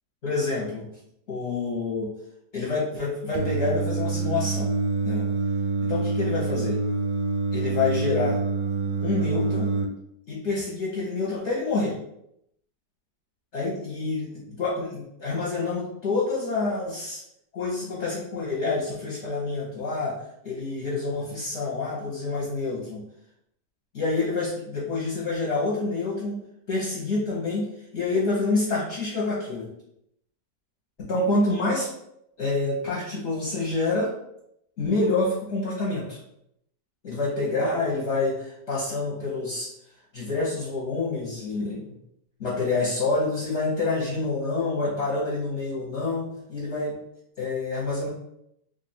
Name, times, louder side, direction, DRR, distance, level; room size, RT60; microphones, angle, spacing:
voice 1, 0.2-0.8 1.3-2.1 2.5-4.7 5.0-5.3 5.8-6.8 7.5-8.4 9.0-9.7 10.3-12.0 13.5-17.2 17.5-20.2 20.4-23.0 23.9-26.4 26.7-27.7 27.9-29.7 31.0-31.9 32.4-34.1 34.8-36.2 37.0-39.7 40.1-41.8 42.4-47.0 47.4-48.1, left 3 dB, 45° left, -5 dB, 1.1 m, -27 dB
Singing, 3.3-9.9, right 4 dB, 90° right, 1.3 m, -26 dB
2.9 x 2.6 x 4.3 m, 0.76 s
omnidirectional pair, 1.9 m